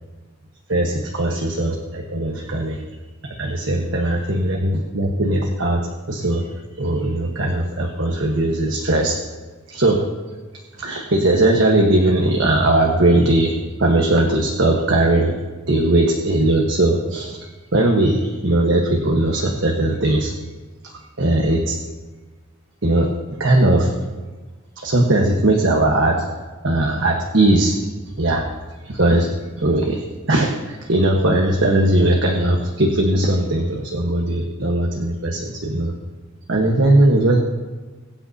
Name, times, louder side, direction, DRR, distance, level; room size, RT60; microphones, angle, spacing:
voice 1, 0.7-2.8 3.2-6.5 6.8-9.2 9.7-10.0 10.8-13.5 13.8-15.4 15.7-17.4 17.7-20.3 20.8-21.8 22.8-23.1 23.4-23.9 24.8-26.2 26.6-27.7 28.2-28.4 28.8-29.3 29.6-35.9 36.5-37.4, right 1 dB, 70° right, 1 dB, 1.2 m, -19 dB
21.5 x 8.9 x 2.8 m, 1.3 s
head